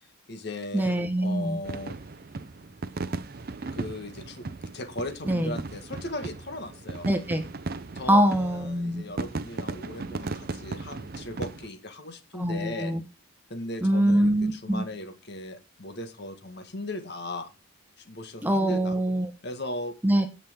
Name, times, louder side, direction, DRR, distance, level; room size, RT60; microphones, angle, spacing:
voice 1, 0.0-2.0 3.6-4.5 4.7-7.1 8.0-12.9 13.5-17.5 18.0-19.0 19.4-19.9, left 1 dB, 55° left, 7 dB, 1.8 m, -37 dB
voice 2, 0.7-1.6 5.3-5.6 7.1-7.5 8.1-9.0 12.3-13.0 13.8-14.8 18.4-19.3 20.0-20.3, right 1 dB, 10° right, 7 dB, 1.2 m, -24 dB
sound 1, 1.6-11.7, right 3 dB, 50° right, 0.6 m, -37 dB
17.0 x 6.1 x 3.6 m, 0.27 s
head